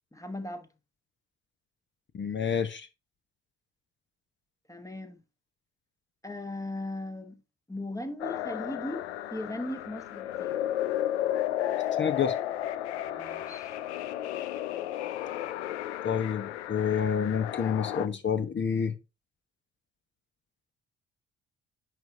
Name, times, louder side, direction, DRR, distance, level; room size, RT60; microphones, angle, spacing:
voice 1, 0.1-0.7 4.7-5.2 6.2-7.4 7.7-10.6 13.1-13.7, left 1 dB, 10° left, 1.2 m, -38 dB
voice 2, 2.1-2.9 12.0-12.3 16.0-18.9, left 7 dB, 35° left, 1.0 m, -28 dB
sound 1, 8.2-18.1, left 12 dB, 80° left, 0.5 m, -33 dB
10.5 x 4.1 x 2.6 m
figure-of-eight pair, 45°, 33 cm